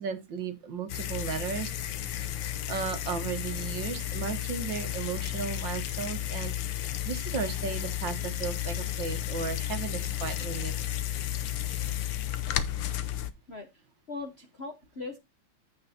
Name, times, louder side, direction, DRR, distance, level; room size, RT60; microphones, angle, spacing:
voice 1, 0.0-1.9 2.7-6.5 7.0-11.0, right 6 dB, 65° right, 1.8 m, -35 dB
sound 1, 0.9-13.3, left 12 dB, 70° left, 1.5 m, -33 dB
voice 2, 13.5-15.2, left 3 dB, 45° left, 0.8 m, -40 dB
15.0 x 5.5 x 2.8 m
omnidirectional pair, 2.3 m